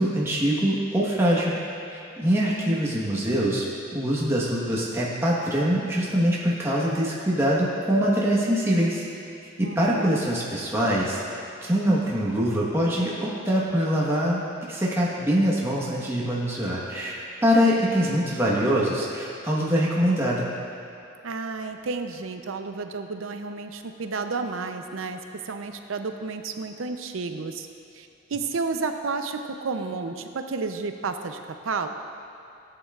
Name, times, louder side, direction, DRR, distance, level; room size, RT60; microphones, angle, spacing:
voice 1, 0.0-1.5 1.9-9.0 9.6-11.2 11.6-14.4 14.7-20.5, equal, 15° right, -6 dB, 1.2 m, -24 dB
voice 2, 9.6-10.2 21.2-25.2 25.4-27.7 27.9-31.9, right 4 dB, 75° right, 7 dB, 0.6 m, -31 dB
14.0 x 9.0 x 2.4 m, 2.8 s
head